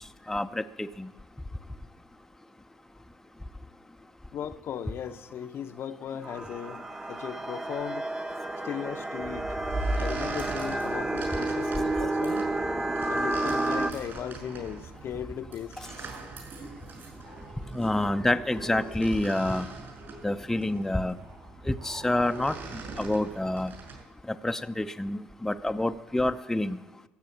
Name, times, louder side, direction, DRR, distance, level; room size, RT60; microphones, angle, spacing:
voice 1, 0.3-1.1 17.7-19.7 20.2-21.2 21.7-22.6 23.0-23.7 24.3-26.8, left 1 dB, 5° left, 0.6 m, -28 dB
voice 2, 4.3-6.8 7.1-8.1 8.6-9.6 10.0-12.4 13.1-15.8, left 8 dB, 55° left, 0.8 m, -37 dB
sound 1, 6.2-13.9, right 2 dB, 10° right, 1.0 m, -31 dB
sound 2, 9.2-24.0, right 2 dB, 45° right, 6.6 m, -40 dB
15.5 x 7.4 x 8.6 m
hypercardioid pair, 70°, 5 cm